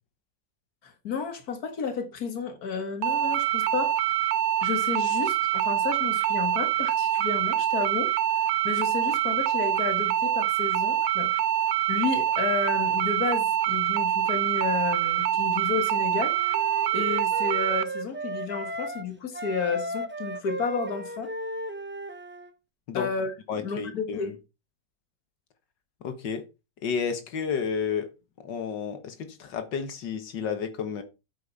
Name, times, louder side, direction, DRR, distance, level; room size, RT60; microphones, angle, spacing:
voice 1, 0.8-4.1 4.6-11.3 11.9-16.4 16.9-21.3 22.9-24.3, left 5 dB, 60° left, 2.3 m, -32 dB
sound 1, 3.0-17.8, right 11 dB, 65° right, 1.0 m, -25 dB
Wind instrument woodwind instrument, 16.1-19.0 19.3-22.5, right 1 dB, 10° right, 0.6 m, -36 dB
voice 2, 23.5-24.3 26.0-26.4 26.8-28.1 28.4-31.0, left 6 dB, 85° left, 2.0 m, -31 dB
8.8 x 8.7 x 4.1 m
omnidirectional pair, 1.9 m